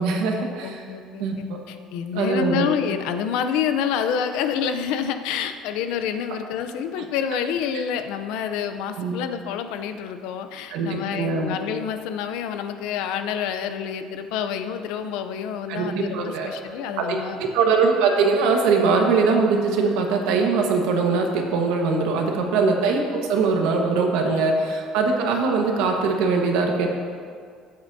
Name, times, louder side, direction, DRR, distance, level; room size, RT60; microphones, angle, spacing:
voice 1, 0.0-0.8 1.2-1.6 2.1-2.7 9.0-9.2 10.7-11.5 15.7-16.5 17.0-26.9, right 4 dB, 85° right, 2 dB, 1.4 m, -22 dB
voice 2, 0.6-1.3 1.7-17.4 22.3-22.6 24.2-24.5, left 8 dB, 80° left, 9 dB, 0.6 m, -28 dB
15.5 x 8.0 x 2.7 m, 2.1 s
cardioid pair, 170°, 0 cm